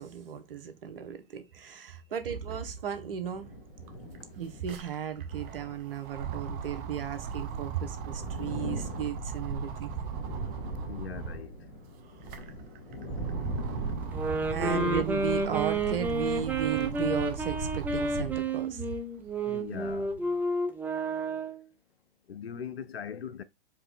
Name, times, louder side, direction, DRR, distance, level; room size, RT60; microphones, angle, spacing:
voice 1, 0.0-3.5 4.4-9.9 14.5-18.9, right 8 dB, 70° right, 1.1 m, -35 dB
sound 1, 3.0-17.2, left 1 dB, 65° left, 2.6 m, -44 dB
sound 2, 3.4-3.5 3.7-11.5 12.0-18.5 19.0-20.2, right 6 dB, 30° right, 0.8 m, -38 dB
voice 2, 10.8-11.5 14.6-15.1 19.4-20.1 22.3-23.4, left 7 dB, 85° left, 0.7 m, -39 dB
sound 3, 14.1-21.7, right 2 dB, 5° right, 0.4 m, -31 dB
4.7 x 3.0 x 3.7 m
hypercardioid pair, 115°, 30 cm